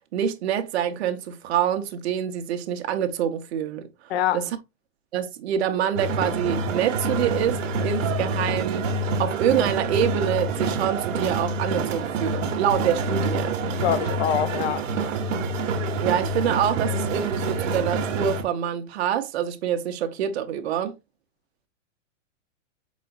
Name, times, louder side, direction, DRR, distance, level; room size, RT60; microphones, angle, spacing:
voice 1, 0.1-3.9 4.3-4.5 5.1-8.9 9.2-13.6 16.0-21.0, right 9 dB, 55° right, 0.9 m, -26 dB
voice 2, 4.1-4.4 13.8-14.9, left 10 dB, 55° left, 0.7 m, -24 dB
sound 1, 6.0-18.4, right 3 dB, 70° right, 1.1 m, -27 dB
4.8 x 4.1 x 2.5 m
hypercardioid pair, 155°, 39 cm